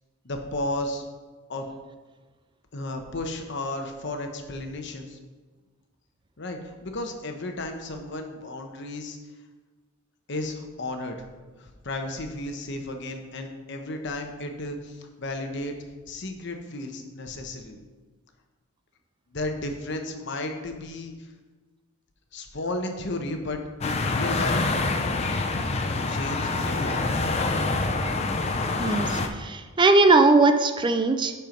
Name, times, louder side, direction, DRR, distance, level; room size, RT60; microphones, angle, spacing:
voice 1, 0.2-1.0 1.5-1.7 2.7-5.2 6.4-9.2 10.3-11.2 11.6-15.7 16.1-17.8 19.3-21.3 22.3-24.6 25.9-27.2, left 2 dB, 60° left, 4 dB, 1.1 m, -33 dB
sound 1, 23.8-29.3, left 3 dB, 30° left, 0.6 m, -26 dB
voice 2, 28.8-31.3, right 3 dB, 25° right, 8 dB, 0.4 m, -19 dB
11.0 x 4.6 x 5.2 m, 1.3 s
head